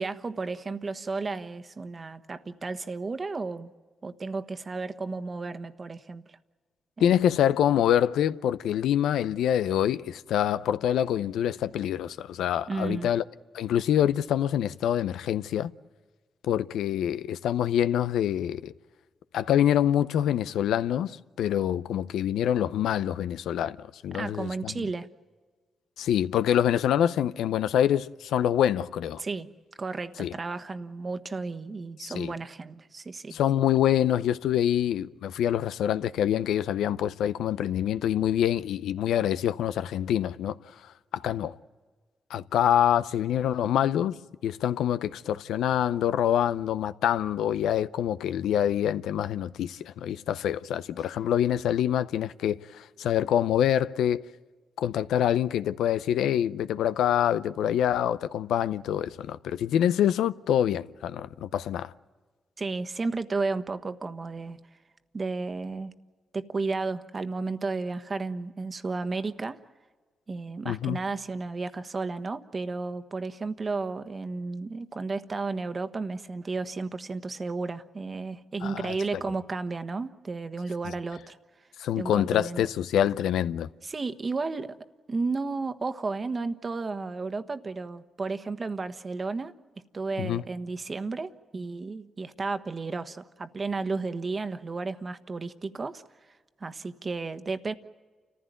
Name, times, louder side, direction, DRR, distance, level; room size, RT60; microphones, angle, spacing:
voice 1, 0.0-3.7 4.0-6.4 7.0-7.4 12.7-13.1 24.1-25.1 29.2-29.5 29.8-33.4 51.0-51.1 62.6-64.6 65.1-65.9 66.3-69.6 70.3-81.4 82.0-82.6 83.8-84.8 85.1-89.5 89.9-96.0 96.6-97.7, right 3 dB, 40° right, 1.3 m, -33 dB
voice 2, 7.0-13.2 13.5-15.7 16.4-18.7 19.3-24.9 26.0-29.2 30.2-30.3 32.0-32.3 33.3-40.6 41.1-41.6 42.3-54.3 54.8-61.9 70.6-71.0 78.6-78.9 81.8-83.7 90.2-90.4, left 10 dB, 90° left, 0.6 m, -26 dB
29.0 x 15.0 x 9.3 m
cardioid pair, 70°, 0 cm